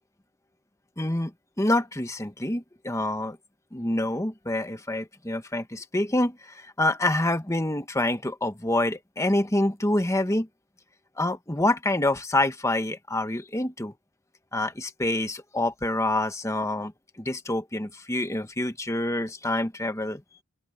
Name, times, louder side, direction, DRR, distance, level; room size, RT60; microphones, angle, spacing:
voice 1, 1.0-1.3 1.6-3.4 3.7-10.5 11.2-13.9 14.5-16.9 17.2-20.2, left 1 dB, 15° left, 1.3 m, -27 dB
open air
head